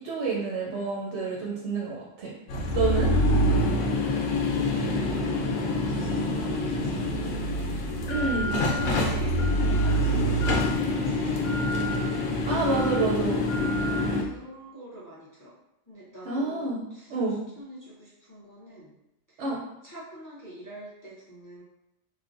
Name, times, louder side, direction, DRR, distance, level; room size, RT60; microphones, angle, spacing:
voice 1, 0.0-2.3 2.7-3.1 8.1-8.6 12.4-13.5 16.2-16.8 17.1-17.3 19.4-19.6, right 3 dB, 65° right, -3 dB, 0.8 m, -28 dB
sound 1, 2.5-14.2, left 1 dB, 80° left, 1.0 m, -25 dB
voice 2, 3.9-12.0 13.7-15.5 15.9-18.9 19.3-19.4 19.8-21.6, right 1 dB, 30° left, -8 dB, 0.4 m, -46 dB
3.2 x 2.1 x 2.4 m, 0.86 s
omnidirectional pair, 1.4 m